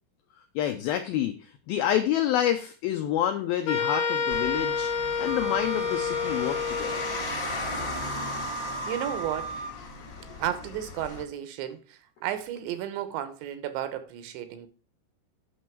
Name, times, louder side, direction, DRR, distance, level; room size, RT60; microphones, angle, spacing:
voice 1, 0.6-1.4 1.7-4.9 5.2-7.1, left 11 dB, 85° left, 2.1 m, -28 dB
sound 1, 3.7-7.3, left 6 dB, 65° left, 2.1 m, -29 dB
sound 2, 4.3-11.2, left 3 dB, 40° left, 1.6 m, -37 dB
Wind instrument woodwind instrument, 5.3-9.8, right 5 dB, 65° right, 1.8 m, -36 dB
voice 2, 8.9-9.5 10.4-14.7, right 11 dB, 85° right, 3.3 m, -33 dB
9.4 x 6.3 x 4.5 m
omnidirectional pair, 5.1 m